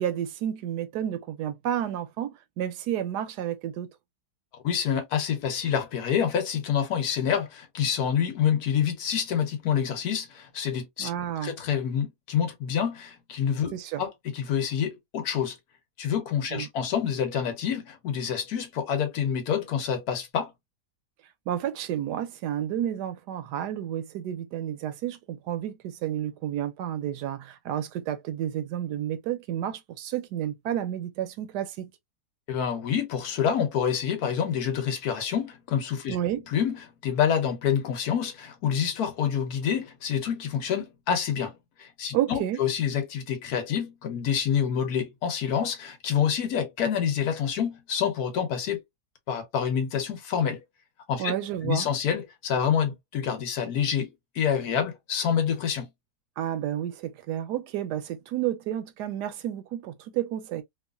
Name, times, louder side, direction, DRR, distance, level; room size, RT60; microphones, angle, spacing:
voice 1, 0.0-3.9 11.0-11.5 13.7-14.0 16.5-16.7 21.5-31.9 36.1-36.5 42.1-42.6 51.2-51.9 56.4-60.6, right 11 dB, 80° right, 1.1 m, -31 dB
voice 2, 4.6-11.1 11.4-13.7 14.0-15.6 16.0-20.5 32.5-36.2 36.5-48.8 49.3-50.6 51.1-51.3 51.6-55.9, left 8 dB, 70° left, 1.3 m, -27 dB
3.0 x 2.4 x 2.3 m
omnidirectional pair, 1.8 m